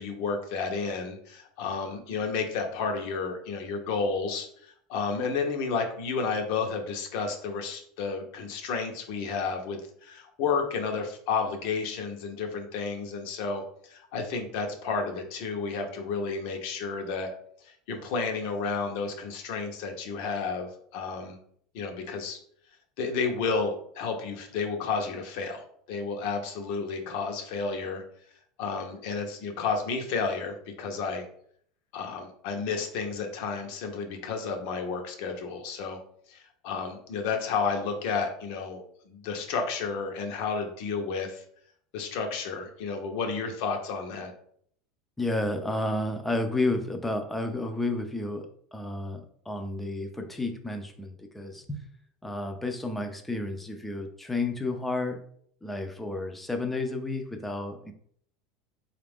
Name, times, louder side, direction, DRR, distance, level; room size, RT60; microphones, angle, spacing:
voice 1, 0.0-17.3 17.6-21.4 21.7-22.4 23.0-28.0 28.6-31.2 31.9-36.0 36.3-41.4 41.9-44.3, left 5 dB, 65° left, 4 dB, 0.8 m, -31 dB
voice 2, 45.2-51.9 52.2-55.2 55.6-57.9, left 2 dB, 5° left, 5 dB, 0.5 m, -31 dB
4.0 x 2.5 x 3.5 m, 0.62 s
supercardioid pair, 125°, 2 cm